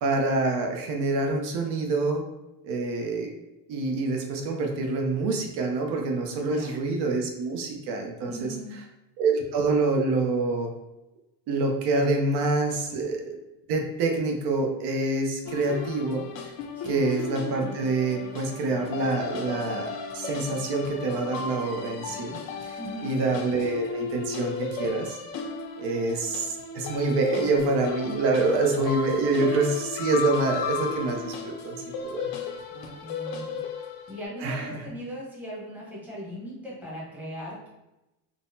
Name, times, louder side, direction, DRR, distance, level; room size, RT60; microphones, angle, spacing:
voice 1, 0.0-2.2 2.6-3.3 3.7-8.5 9.2-10.7 11.5-13.4 13.7-16.3 16.9-22.7 23.0-25.2 25.8-32.3 34.4-34.8, right 3 dB, 65° right, 2 dB, 0.7 m, -26 dB
voice 2, 6.4-6.8 8.2-8.8 16.7-17.0 22.8-23.2 32.7-33.6 34.1-37.7, equal, 5° right, -7 dB, 0.9 m, -39 dB
sound 1, 15.5-34.2, left 5 dB, 85° left, 0.6 m, -35 dB
3.8 x 2.0 x 2.6 m, 0.96 s
cardioid pair, 145°, 44 cm